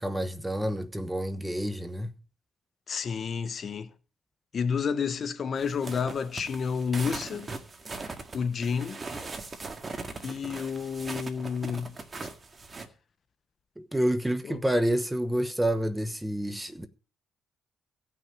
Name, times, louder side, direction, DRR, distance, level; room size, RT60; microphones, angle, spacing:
voice 1, 0.0-2.1 13.8-16.9, right 1 dB, 10° right, 1.1 m, -28 dB
voice 2, 2.9-3.9 4.5-7.5 8.3-9.0 10.2-12.0 14.5-14.6, left 6 dB, 50° left, 0.9 m, -30 dB
sound 1, 5.6-12.9, right 3 dB, 30° right, 1.9 m, -40 dB
16.0 x 6.1 x 7.5 m
cardioid pair, 90°, 0 cm